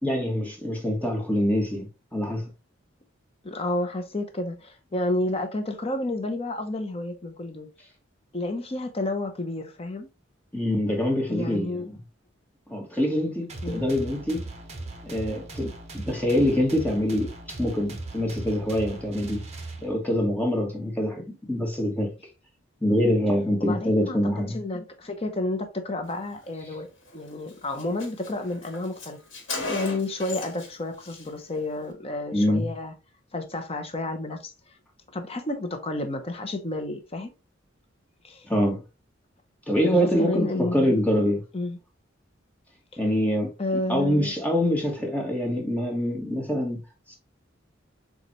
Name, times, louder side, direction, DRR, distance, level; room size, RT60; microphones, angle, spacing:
voice 1, 0.0-2.5 10.5-12.0 12.7-14.4 15.0-19.4 19.8-21.2 21.5-22.1 22.8-24.6 32.3-32.7 38.4-38.8 39.7-41.4 43.0-43.5 43.9-46.8 47.1-47.2, equal, 10° left, 1.3 m, -25 dB
voice 2, 3.4-7.7 8.3-10.1 11.3-11.9 13.6-13.9 23.6-26.9 27.1-29.2 29.7-32.9 33.3-34.5 35.1-37.3 38.2-38.5 39.8-41.0 41.5-41.8 43.6-44.3, left 2 dB, 30° left, 0.8 m, -30 dB
sound 1, 13.5-20.2, right 2 dB, 35° right, 1.0 m, -38 dB
Car, 27.1-27.2 27.5-27.6 27.8-30.7 31.0-31.3, left 3 dB, 75° left, 1.5 m, -36 dB
6.7 x 2.4 x 3.0 m
head